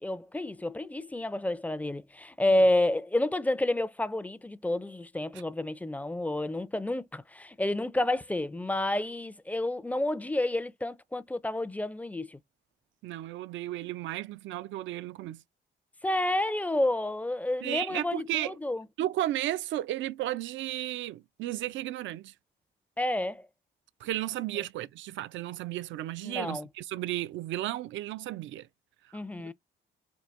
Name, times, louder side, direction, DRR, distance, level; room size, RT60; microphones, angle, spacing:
voice 1, 0.0-12.4 16.0-18.8 23.0-23.5 26.2-26.7 29.1-29.5, left 1 dB, 10° left, 0.4 m, -30 dB
voice 2, 13.0-15.4 17.6-18.6 19.0-22.3 24.0-28.7 29.0-29.2, right 14 dB, 75° right, 0.4 m, -34 dB
4.6 x 2.5 x 2.4 m
cardioid pair, 90°, 20 cm